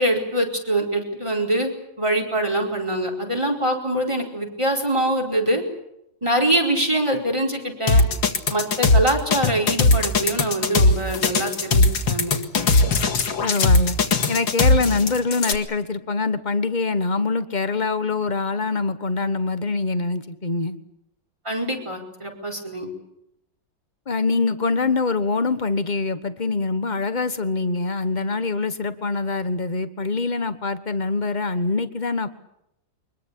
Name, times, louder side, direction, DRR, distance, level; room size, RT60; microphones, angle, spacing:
voice 1, 0.0-1.7 2.0-5.6 6.2-8.0 8.5-12.4 21.4-22.9, right 1 dB, 15° right, 1 dB, 5.0 m, -24 dB
sound 1, 7.9-15.6, left 3 dB, 90° left, 2.7 m, -19 dB
voice 2, 13.4-14.0 14.3-20.8 24.1-32.3, left 3 dB, 25° left, 11 dB, 1.2 m, -24 dB
24.0 x 21.5 x 8.5 m, 0.80 s
omnidirectional pair, 2.0 m